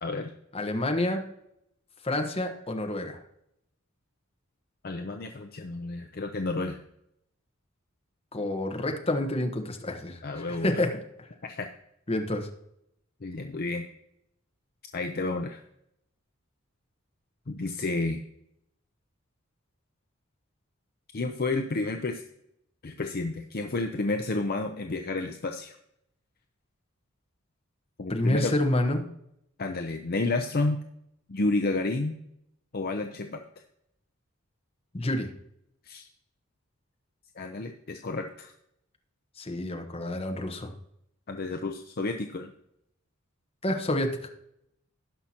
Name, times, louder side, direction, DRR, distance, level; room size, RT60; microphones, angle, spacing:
voice 1, 0.0-0.3 4.8-6.8 10.2-10.8 11.4-11.7 13.2-13.9 14.9-15.6 17.5-18.2 21.1-22.2 22.8-25.8 28.0-28.5 29.6-30.8 31.3-32.2 32.7-33.4 35.8-36.0 37.4-38.5 41.3-42.5, left 2 dB, 45° left, 5 dB, 0.6 m, -30 dB
voice 2, 0.5-1.2 2.0-3.2 8.3-11.0 12.1-12.5 28.1-29.0 34.9-35.3 39.4-40.7 43.6-44.3, left 1 dB, 30° left, 4 dB, 1.2 m, -28 dB
17.5 x 5.8 x 2.9 m, 0.78 s
head